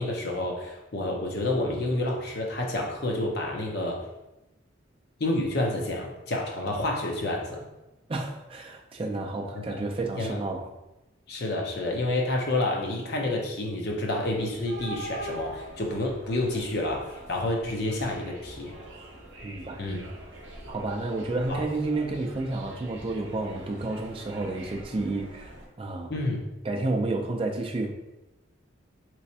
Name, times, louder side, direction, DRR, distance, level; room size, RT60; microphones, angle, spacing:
voice 1, 0.0-4.0 5.2-7.7 9.5-9.6 10.2-10.4 11.3-18.7 19.8-20.1 21.5-21.6 26.1-26.4, left 2 dB, 50° left, 0 dB, 0.6 m, -29 dB
voice 2, 8.1-10.7 19.4-19.9 20.7-25.5 25.8-26.2 26.6-27.9, right 2 dB, 25° right, 2 dB, 0.3 m, -30 dB
sound 1, 14.2-25.7, right 1 dB, 60° right, 0.7 m, -43 dB
3.2 x 3.1 x 2.7 m, 0.97 s
head